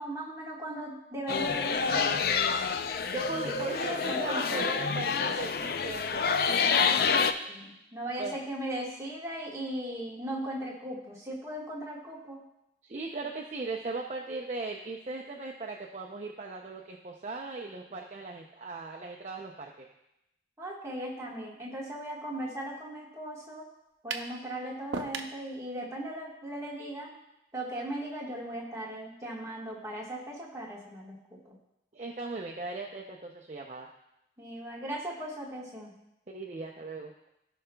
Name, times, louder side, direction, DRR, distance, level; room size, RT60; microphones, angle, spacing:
voice 1, 0.0-2.2 4.1-4.7 7.5-12.4 20.6-23.6 24.0-27.2 27.5-31.2 31.4-31.5 34.4-35.9, right 1 dB, 15° right, -4 dB, 1.5 m, -38 dB
sound 1, 1.3-7.3, left 5 dB, 55° left, 0.4 m, -28 dB
voice 2, 3.1-6.4 8.2-8.4 12.8-19.9 31.9-33.9 36.3-37.1, right 3 dB, 40° right, 0 dB, 0.5 m, -38 dB
sound 2, 24.1-24.3 24.9-25.4, right 4 dB, 90° right, 0.6 m, -35 dB
16.0 x 5.5 x 2.3 m, 0.87 s
head